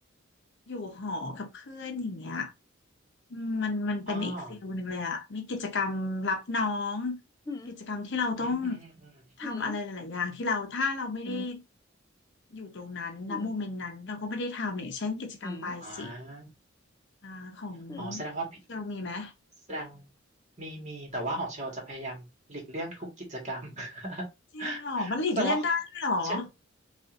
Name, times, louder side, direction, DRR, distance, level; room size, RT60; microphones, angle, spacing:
voice 1, 0.7-2.5 3.3-7.2 7.7-8.8 9.4-11.6 12.5-16.1 17.2-18.2 18.7-19.3 24.5-26.5, left 3 dB, 60° left, 0.8 m, -32 dB
voice 2, 4.1-4.5 8.4-9.1 15.8-16.5 18.0-18.5 19.7-20.1 20.6-24.3 24.6-25.7 26.2-26.4, right 1 dB, 35° right, 1.7 m, -36 dB
sound 1, 7.5-7.8 9.4-9.8 11.2-11.5 13.3-13.5 15.4-15.8 17.9-18.1, left 2 dB, 15° left, 0.4 m, -40 dB
5.2 x 2.6 x 2.5 m
head